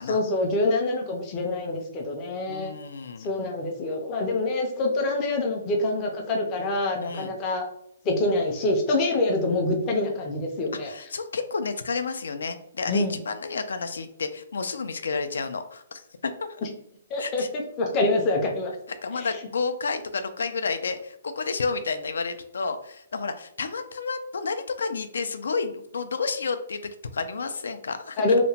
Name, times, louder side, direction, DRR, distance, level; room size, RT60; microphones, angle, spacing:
voice 1, 0.1-2.7 3.2-7.6 8.0-10.9 12.9-13.2 17.1-18.7 19.1-19.3 28.2-28.4, left 2 dB, 20° left, 1 dB, 0.4 m, -25 dB
voice 2, 2.5-3.3 7.0-7.3 10.8-16.6 17.2-17.5 19.0-28.2, left 4 dB, 85° left, 9 dB, 0.3 m, -31 dB
2.8 x 2.1 x 2.7 m, 0.72 s
hypercardioid pair, 175°, 0 cm